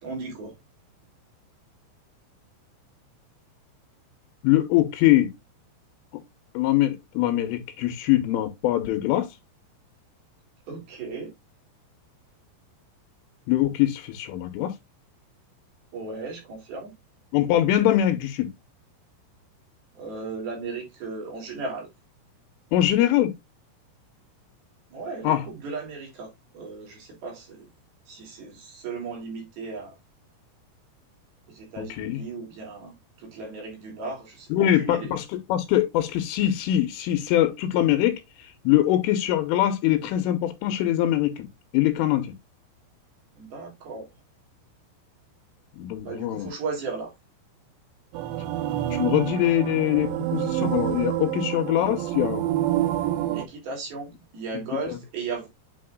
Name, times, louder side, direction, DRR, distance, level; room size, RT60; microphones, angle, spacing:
voice 1, 0.0-0.5 10.7-11.3 15.9-16.9 19.9-21.9 24.9-27.7 28.1-29.9 31.5-32.9 33.2-35.1 43.4-44.1 46.0-47.1 53.3-55.5, right 4 dB, 50° right, 4.7 m, -36 dB
voice 2, 4.4-5.3 6.5-9.3 13.5-14.7 17.3-18.5 22.7-23.3 25.2-25.4 32.0-32.2 34.5-38.2 38.6-41.5 41.7-42.3 45.7-46.5 48.9-52.4, left 13 dB, 80° left, 3.3 m, -23 dB
sound 1, 48.1-53.5, right 13 dB, 85° right, 2.5 m, -27 dB
8.7 x 5.2 x 2.4 m
omnidirectional pair, 6.0 m